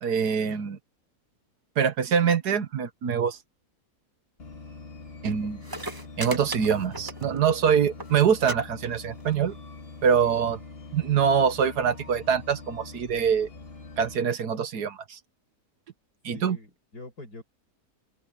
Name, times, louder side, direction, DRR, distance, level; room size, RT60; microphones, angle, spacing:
voice 1, 0.0-0.8 1.8-3.4 5.2-5.6 6.2-9.6 10.0-10.6 10.9-13.5 14.0-15.2 16.2-16.6, right 7 dB, 85° right, 1.8 m, -24 dB
sound 1, 4.4-14.2, left 3 dB, 40° left, 2.1 m, -44 dB
sound 2, 5.3-5.4 5.6-7.6 7.8-8.1 8.4-8.6 8.8-9.3 10.2-10.3, right 2 dB, 15° right, 1.2 m, -36 dB
voice 2, 16.3-17.4, left 2 dB, 75° left, 8.0 m, -44 dB
open air
omnidirectional pair, 1.7 m